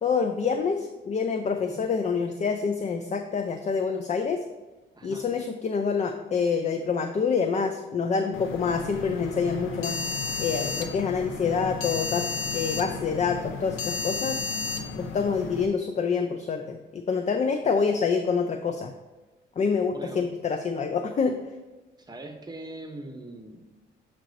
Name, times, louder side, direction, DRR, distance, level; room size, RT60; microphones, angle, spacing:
voice 1, 0.0-4.4 5.0-10.0 10.4-12.3 12.5-14.4 15.0-18.9 19.6-21.4, left 5 dB, 35° left, 7 dB, 0.5 m, -27 dB
voice 2, 4.9-5.3 19.9-20.3 22.0-23.9, right 2 dB, 20° right, 3 dB, 0.8 m, -42 dB
sound 1, 8.3-15.7, left 3 dB, 90° left, 0.6 m, -33 dB
7.3 x 3.0 x 5.1 m, 1.2 s
cardioid pair, 90°, 20 cm